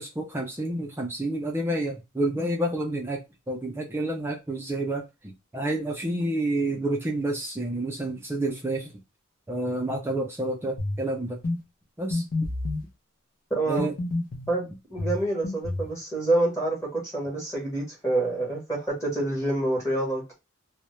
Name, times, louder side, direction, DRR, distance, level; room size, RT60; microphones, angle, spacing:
voice 1, 0.0-3.2 3.5-5.0 5.5-8.9 9.5-11.4 12.0-12.2 13.7-13.9, right 1 dB, 10° right, 0.4 m, -29 dB
sound 1, 10.8-11.0 11.4-11.6 12.1-12.9 13.8-14.5 15.0-15.9, left 2 dB, 40° left, 0.6 m, -29 dB
voice 2, 13.6-13.9 14.5-20.3, right 2 dB, 15° left, 0.9 m, -27 dB
2.2 x 2.0 x 2.9 m
head